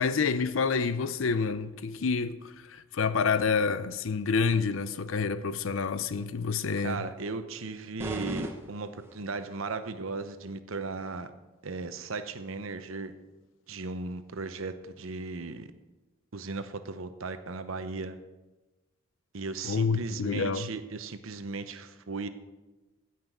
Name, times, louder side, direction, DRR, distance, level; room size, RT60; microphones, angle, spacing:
voice 1, 0.0-7.1 19.6-20.7, left 5 dB, 70° left, 0.5 m, -28 dB
voice 2, 6.8-11.3 11.6-13.1 13.7-15.7 16.3-18.2 19.3-22.3, right 3 dB, 75° right, 0.8 m, -36 dB
sound 1, 8.0-9.5, right 1 dB, 10° right, 0.9 m, -38 dB
15.5 x 5.9 x 6.0 m
head